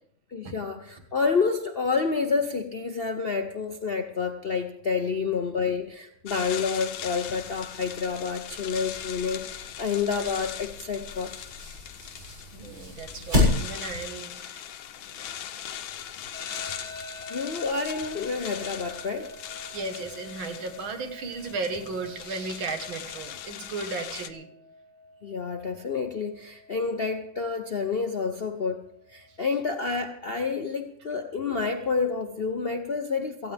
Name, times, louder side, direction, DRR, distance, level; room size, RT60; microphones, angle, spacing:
voice 1, 0.3-11.3 17.3-19.3 25.2-33.5, left 5 dB, 55° left, 5 dB, 0.6 m, -29 dB
sound 1, 6.3-24.3, left 10 dB, 85° left, 1.6 m, -40 dB
sound 2, 8.4-14.0, left 2 dB, 35° right, 7.8 m, -31 dB
voice 2, 12.5-14.7 16.2-16.7 19.7-24.5, right 3 dB, 80° right, 6 dB, 2.3 m, -35 dB
sound 3, 16.3-29.3, left 1 dB, 20° left, 6.0 m, -47 dB
17.5 x 15.0 x 3.5 m, 0.71 s
omnidirectional pair, 2.1 m